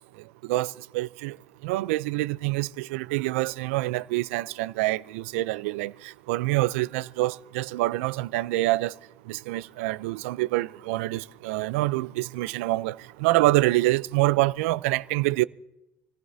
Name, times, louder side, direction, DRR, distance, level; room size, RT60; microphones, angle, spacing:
voice 1, 0.4-1.4 1.6-8.9 9.3-15.4, right 18 dB, 85° right, 0.4 m, -26 dB
28.0 x 15.5 x 2.7 m
supercardioid pair, 85°, 7 cm